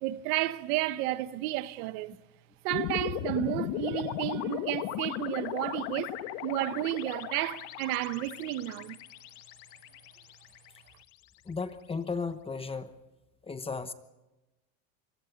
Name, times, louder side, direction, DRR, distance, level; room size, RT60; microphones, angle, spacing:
voice 1, 0.0-2.2 2.6-6.1 6.4-9.0, right 16 dB, 70° right, 1.2 m, -32 dB
sound 1, 2.7-11.0, left 12 dB, 65° left, 1.8 m, -37 dB
voice 2, 11.5-12.9 13.4-13.9, left 4 dB, 10° left, 1.0 m, -35 dB
24.5 x 23.5 x 5.3 m
cardioid pair, 155°, 45 cm